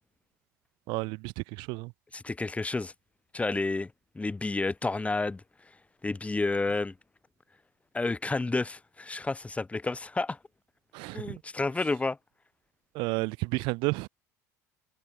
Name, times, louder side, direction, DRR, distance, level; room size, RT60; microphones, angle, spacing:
voice 1, 0.9-1.9 10.9-11.4 12.9-14.1, right 26 dB, 60° right, 1.3 m, -31 dB
voice 2, 2.1-2.9 3.3-5.4 6.0-6.9 7.9-10.4 11.1-12.2, left 3 dB, 15° left, 2.6 m, -30 dB
figure-of-eight pair, 70°, 9 cm